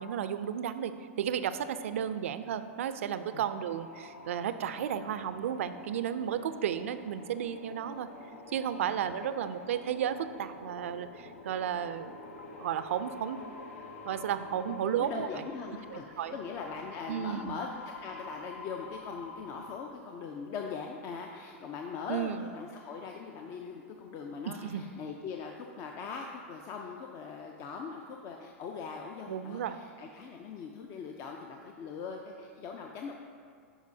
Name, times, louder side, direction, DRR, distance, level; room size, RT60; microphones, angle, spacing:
voice 1, 0.0-8.1 8.5-12.2 12.6-13.4 14.0-15.3 15.9-16.3 17.1-17.6 22.1-22.4 24.5-24.9 29.3-29.8, right 9 dB, 75° right, 11 dB, 0.4 m, -33 dB
sound 1, 2.8-19.8, left 3 dB, 75° left, 0.7 m, -48 dB
voice 2, 14.8-33.1, left 5 dB, 40° left, 2 dB, 0.5 m, -41 dB
10.5 x 4.9 x 2.7 m, 2.1 s
hypercardioid pair, 115°, 7 cm